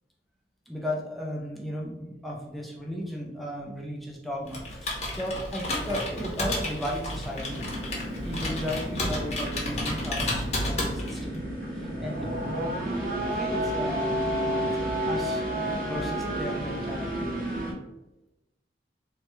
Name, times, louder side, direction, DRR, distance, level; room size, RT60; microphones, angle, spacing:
voice 1, 0.7-7.7 8.2-11.4 11.7-12.3 13.3-15.4 15.8-17.3, equal, ahead, -3 dB, 0.5 m, -35 dB
Computer keyboard, 4.5-11.3, left 1 dB, 40° left, 0.7 m, -32 dB
sound 1, 7.4-17.7, right 1 dB, 50° right, 0.7 m, -31 dB
3.1 x 2.2 x 3.0 m, 0.97 s
head